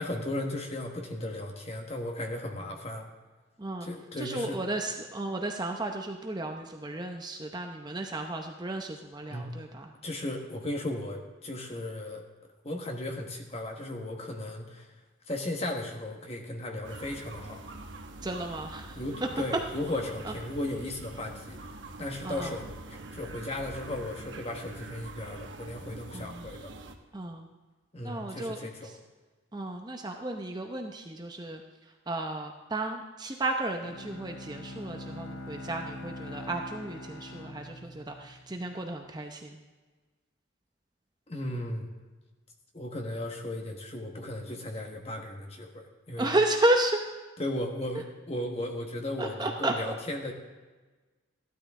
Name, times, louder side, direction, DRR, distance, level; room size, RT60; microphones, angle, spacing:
voice 1, 0.0-3.1 3.8-4.6 9.3-9.5 10.0-12.2 12.6-14.9 15.3-17.6 18.9-21.6 22.0-26.7 27.9-28.9 41.3-41.9 42.7-46.3 47.4-50.3, left 1 dB, 30° left, 2 dB, 1.4 m, -36 dB
voice 2, 4.2-9.9 18.2-19.0 20.2-20.3 22.2-22.5 26.1-26.5 27.1-27.5 28.0-28.9 29.5-31.6 32.1-39.6 46.2-47.0 49.2-49.9, right 1 dB, 20° right, 3 dB, 0.7 m, -33 dB
sound 1, 16.8-27.0, right 2 dB, 60° right, 1.0 m, -45 dB
Bowed string instrument, 33.8-38.8, left 1 dB, 75° left, 1.5 m, -43 dB
15.0 x 12.0 x 3.7 m, 1.3 s
head